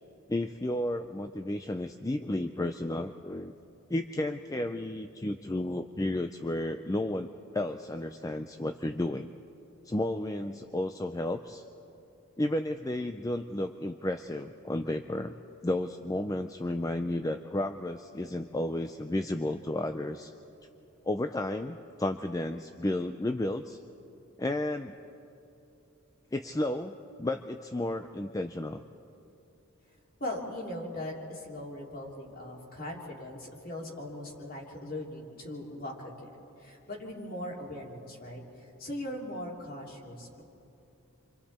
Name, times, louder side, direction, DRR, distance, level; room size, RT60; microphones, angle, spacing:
voice 1, 0.3-3.5 3.9-9.3 9.8-11.6 12.4-15.3 15.6-20.3 21.0-23.8 24.4-24.9 26.3-28.8, left 1 dB, 15° left, 8 dB, 0.4 m, -32 dB
voice 2, 30.2-36.3 36.6-40.4, left 1 dB, 40° left, -2 dB, 3.2 m, -40 dB
29.0 x 25.5 x 4.3 m, 2.9 s
head